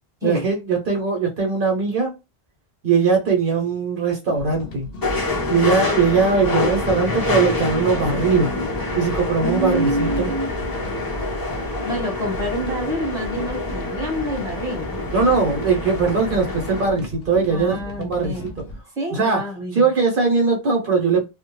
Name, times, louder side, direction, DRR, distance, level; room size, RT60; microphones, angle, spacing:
voice 1, 0.2-2.1 2.8-4.9 5.5-8.5 8.9-10.3 15.1-18.5 19.1-21.3, right 4 dB, 60° right, 0.9 m, -20 dB
sound 1, 4.3-18.8, left 1 dB, 70° left, 0.7 m, -37 dB
sound 2, 5.0-16.9, left 2 dB, 30° left, 0.4 m, -26 dB
voice 2, 9.4-10.6 11.8-14.9 17.5-18.5 19.0-19.9, right 1 dB, 5° right, 1.0 m, -27 dB
2.3 x 2.1 x 3.0 m
omnidirectional pair, 1.0 m